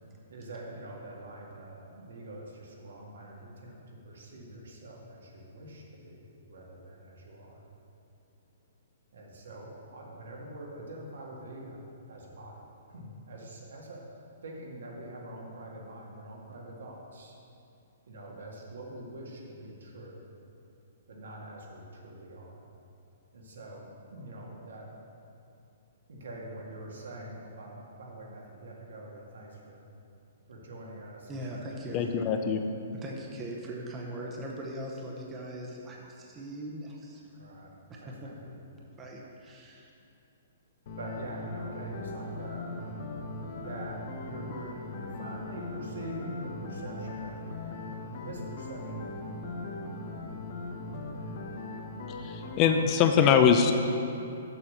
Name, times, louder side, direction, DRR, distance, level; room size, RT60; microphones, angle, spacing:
voice 1, 0.3-3.8 4.0-6.2 6.5-7.6 9.1-11.8 12.1-12.6 12.9-14.0 14.4-17.4 18.1-20.2 21.1-22.6 23.3-24.9 26.1-29.8 30.5-32.0 37.4-37.7 38.0-38.5 40.9-42.8 43.5-47.8 48.0-49.4 50.9-51.5, right 1 dB, 80° right, -2 dB, 1.9 m, -44 dB
voice 2, 31.3-32.1 32.9-37.2 37.9-38.3 39.0-39.9, right 1 dB, 15° right, -1 dB, 0.7 m, -40 dB
voice 3, 31.9-32.6 52.1-53.7, left 7 dB, 20° left, 6 dB, 0.4 m, -23 dB
sound 1, 40.9-52.9, left 2 dB, 45° left, 1.0 m, -39 dB
7.0 x 5.7 x 6.4 m, 2.7 s
hypercardioid pair, 170°, 0 cm